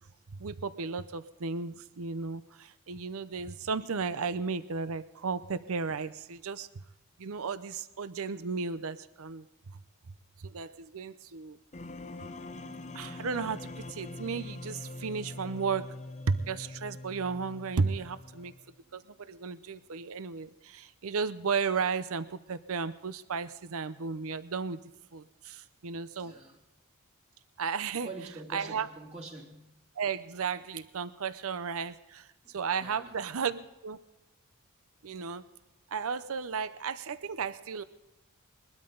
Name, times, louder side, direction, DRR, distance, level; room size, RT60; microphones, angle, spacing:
voice 1, 0.4-6.7 7.2-9.4 10.4-11.6 12.9-15.8 16.3-18.5 18.9-24.8 25.1-26.3 27.6-28.1 28.5-28.9 30.0-34.0 35.0-35.4 35.9-37.8, right 5 dB, 65° right, 0.6 m, -34 dB
sound 1, 11.7-18.8, left 2 dB, 30° left, 0.8 m, -43 dB
voice 2, 26.2-26.6 28.0-29.7 32.4-32.5 32.8-33.1, right 3 dB, 30° right, 2.7 m, -45 dB
22.0 x 12.5 x 3.8 m
head